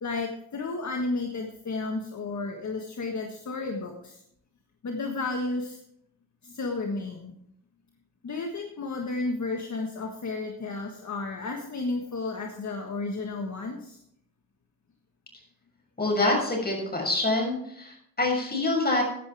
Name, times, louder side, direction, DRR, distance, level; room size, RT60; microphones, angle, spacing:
voice 1, 0.0-4.2 4.8-5.8 6.4-7.3 8.2-14.0, left 3 dB, 50° left, 3 dB, 1.5 m, -32 dB
voice 2, 16.0-19.0, left 2 dB, 25° left, -1 dB, 6.5 m, -26 dB
15.5 x 11.0 x 3.5 m, 0.71 s
cardioid pair, 100°, 36 cm